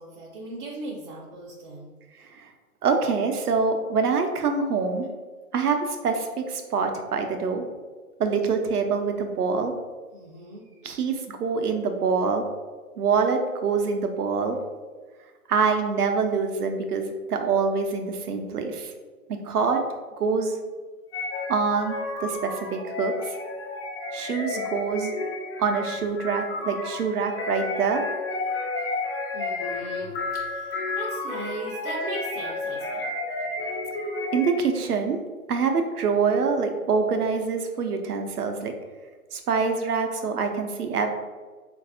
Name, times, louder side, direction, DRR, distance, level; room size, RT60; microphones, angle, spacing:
voice 1, 0.0-1.9 10.1-10.8 29.3-33.1, right 1 dB, 40° right, -4 dB, 0.6 m, -38 dB
voice 2, 2.8-5.0 5.5-7.6 8.2-9.7 10.8-12.5 13.0-14.6 15.5-18.9 19.3-19.8 20.2-20.6 21.5-23.4 24.1-25.1 25.6-28.0 34.3-35.2 35.5-38.7 39.3-41.1, right 5 dB, 80° right, 5 dB, 0.7 m, -25 dB
sound 1, 21.1-34.8, left 3 dB, 40° left, 0.7 m, -32 dB
3.9 x 2.6 x 2.6 m, 1.4 s
figure-of-eight pair, 125°, 45 cm